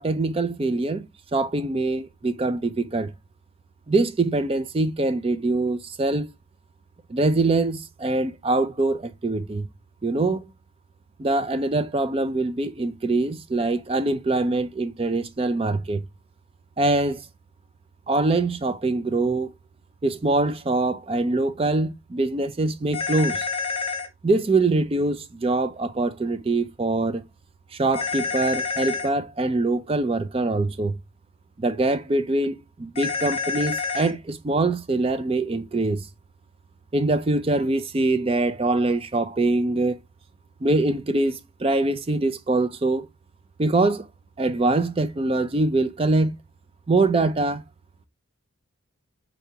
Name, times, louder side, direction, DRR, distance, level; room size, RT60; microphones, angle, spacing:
voice 1, 0.0-3.1 3.9-6.3 7.1-9.7 10.0-10.5 11.2-16.0 16.8-17.2 18.1-19.5 20.0-23.5 24.2-27.2 27.7-31.0 31.6-36.1 36.9-40.0 40.6-43.1 43.6-44.1 44.4-46.3 46.9-47.6, right 2 dB, 25° right, 0.4 m, -23 dB
sound 1, 22.9-24.1 27.9-29.1 32.9-34.1, left 5 dB, 25° left, 0.8 m, -28 dB
4.6 x 4.1 x 2.8 m
head